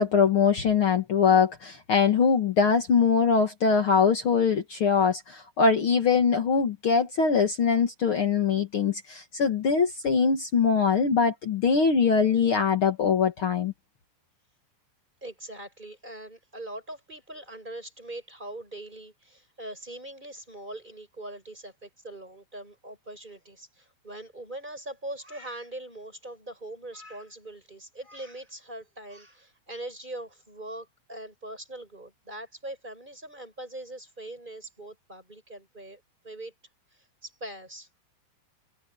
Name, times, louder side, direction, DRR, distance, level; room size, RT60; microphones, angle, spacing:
voice 1, 0.0-13.7, left 5 dB, 75° left, 1.2 m, -22 dB
voice 2, 15.2-36.5 36.9-37.9, right 1 dB, 10° right, 5.7 m, -42 dB
omnidirectional pair, 5.3 m